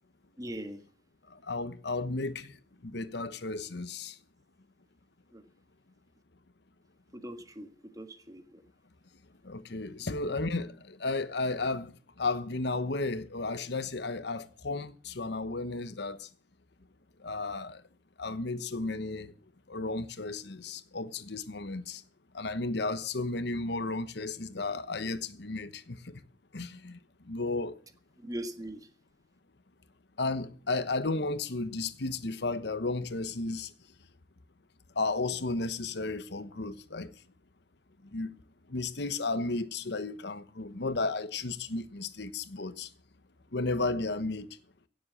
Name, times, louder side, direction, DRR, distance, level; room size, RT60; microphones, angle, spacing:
voice 1, 0.4-0.8 5.3-5.4 7.1-8.6 28.2-28.9, right 1 dB, 20° right, 1.7 m, -41 dB
voice 2, 1.3-2.5 2.8-4.1 9.4-11.9 12.2-16.3 17.2-17.8 18.2-19.3 19.7-22.0 22.3-26.2 26.5-27.0 27.3-27.8 30.2-33.7 35.0-37.1 38.1-38.3 38.7-42.9 43.5-44.5, left 3 dB, 70° left, 1.1 m, -33 dB
17.0 x 7.6 x 7.5 m
head